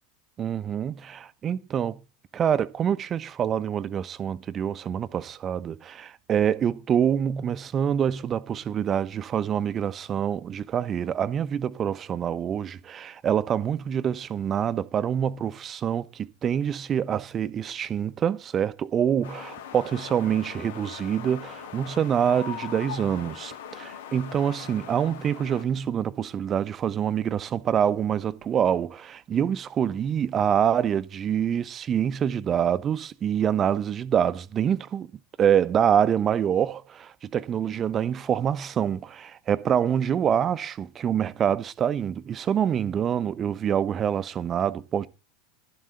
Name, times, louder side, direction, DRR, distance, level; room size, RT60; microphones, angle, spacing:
voice 1, 0.4-2.0 2.3-35.1 35.4-45.1, right 8 dB, 30° right, 1.0 m, -26 dB
sound 1, 19.2-25.6, left 8 dB, 65° left, 2.1 m, -40 dB
13.0 x 7.5 x 6.6 m
figure-of-eight pair, 80°, 0 cm